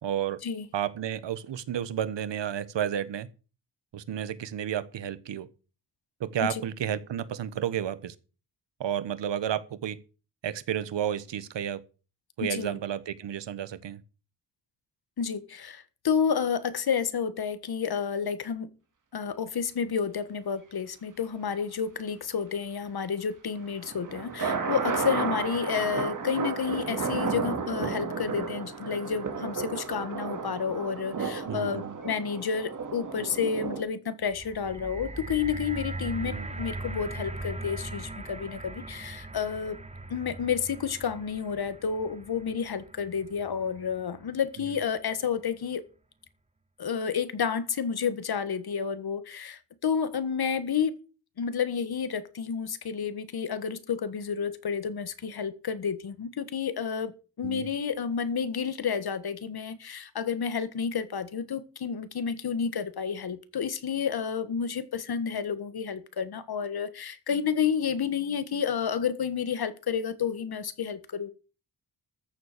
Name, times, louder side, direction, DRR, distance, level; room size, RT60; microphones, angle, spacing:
voice 1, 0.0-0.4 0.7-3.3 3.9-5.5 6.2-8.1 8.8-10.0 10.4-11.8 12.4-14.0 31.4-32.0 36.2-36.5 44.6-44.8 57.4-57.7, right 10 dB, 80° right, 1.3 m, -32 dB
voice 2, 12.4-12.8 15.2-18.7 19.1-39.8 40.1-45.8 46.8-51.0 51.4-57.1 57.4-71.3, left 6 dB, 60° left, 1.6 m, -30 dB
sound 1, 23.6-33.8, right 5 dB, 45° right, 2.6 m, -33 dB
sound 2, 34.3-44.5 45.2-45.3, right 2 dB, 15° right, 1.3 m, -40 dB
13.5 x 7.1 x 6.7 m
cardioid pair, 95°, 42 cm